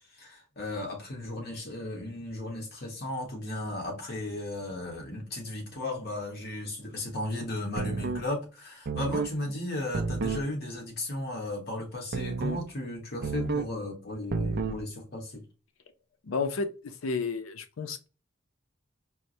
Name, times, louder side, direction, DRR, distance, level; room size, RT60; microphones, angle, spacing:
voice 1, 0.2-15.4, left 1 dB, 50° left, 1.2 m, -35 dB
sound 1, 7.8-8.3 8.8-9.3 9.9-10.5 12.1-12.7 13.2-13.7 14.3-14.8, right 4 dB, 50° right, 0.4 m, -31 dB
voice 2, 16.2-18.1, left 4 dB, 85° left, 0.5 m, -32 dB
4.4 x 2.1 x 2.6 m
head